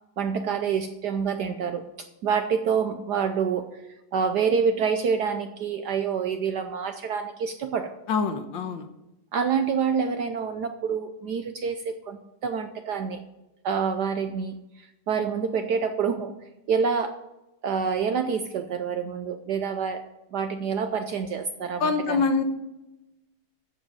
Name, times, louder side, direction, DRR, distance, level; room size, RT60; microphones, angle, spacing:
voice 1, 0.2-3.8 4.1-7.9 9.3-13.2 13.6-16.3 16.7-17.2 17.6-20.0 20.3-22.2, right 6 dB, 65° right, 7 dB, 1.1 m, -27 dB
voice 2, 8.1-8.9 21.8-22.4, left 4 dB, 65° left, 7 dB, 1.7 m, -25 dB
13.5 x 7.5 x 5.5 m, 0.95 s
omnidirectional pair, 2.3 m